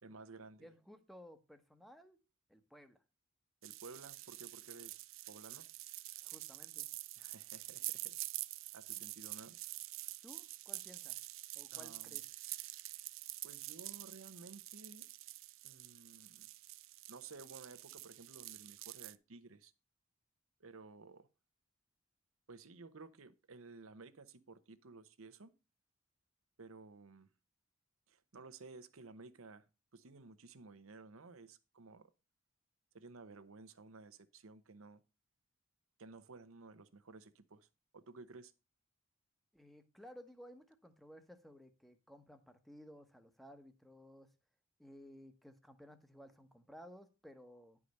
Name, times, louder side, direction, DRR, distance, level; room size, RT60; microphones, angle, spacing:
voice 1, 0.0-0.7 3.6-5.7 7.2-8.2 8.7-9.6 11.7-12.2 13.4-15.1 15.6-16.5 17.1-19.7 20.6-21.3 22.5-25.5 26.6-27.3 28.1-32.1 32.9-35.0 36.0-37.7 37.9-38.5, right 3 dB, 85° right, 0.9 m, -55 dB
voice 2, 0.6-2.2 2.5-3.0 6.2-6.9 10.2-11.2 11.5-12.2 39.5-44.3 44.8-47.8, equal, ahead, 0.9 m, -57 dB
sound 1, 3.6-19.1, right 18 dB, 70° right, 0.4 m, -47 dB
10.0 x 4.9 x 5.2 m
head